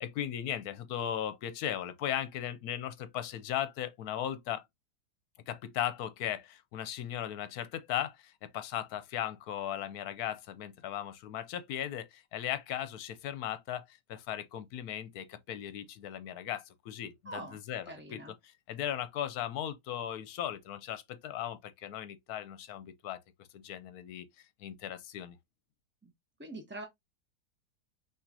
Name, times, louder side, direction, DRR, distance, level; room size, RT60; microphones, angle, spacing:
voice 1, 0.0-4.6 5.5-17.8 18.1-18.2 18.7-23.2 23.5-24.3 24.6-25.4, left 10 dB, 75° left, 1.1 m, -37 dB
voice 2, 17.2-17.6 17.9-18.3 26.0-26.1 26.4-26.8, right 2 dB, 15° right, 0.4 m, -43 dB
5.9 x 3.1 x 2.7 m
omnidirectional pair, 1.7 m